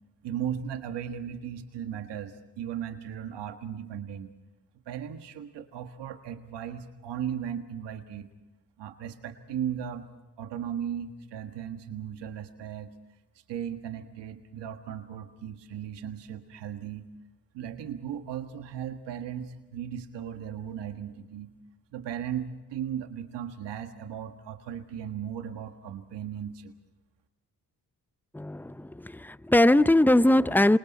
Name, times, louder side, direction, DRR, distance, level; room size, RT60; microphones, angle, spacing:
voice 1, 0.2-4.3 4.8-8.3 8.8-10.0 10.4-12.9 13.5-17.1 17.5-21.5 21.9-26.7, right 9 dB, 90° right, 1.7 m, -36 dB
voice 2, 28.3-30.8, left 1 dB, 5° left, 0.7 m, -21 dB
27.5 x 27.0 x 4.2 m
supercardioid pair, 40°, 41 cm